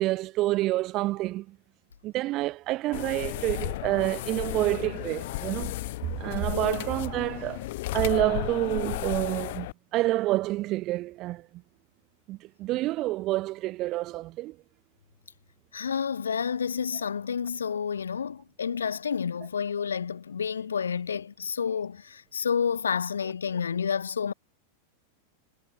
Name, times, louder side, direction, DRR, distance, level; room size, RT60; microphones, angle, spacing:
voice 1, 0.0-1.6 2.0-7.7 7.9-11.5 12.3-14.6, right 17 dB, 35° right, 0.7 m, -28 dB
sound 1, 2.9-9.7, left 19 dB, 50° left, 0.7 m, -34 dB
voice 2, 6.5-6.9 15.7-24.3, left 7 dB, 70° left, 2.2 m, -30 dB
figure-of-eight pair, 90°, 0 cm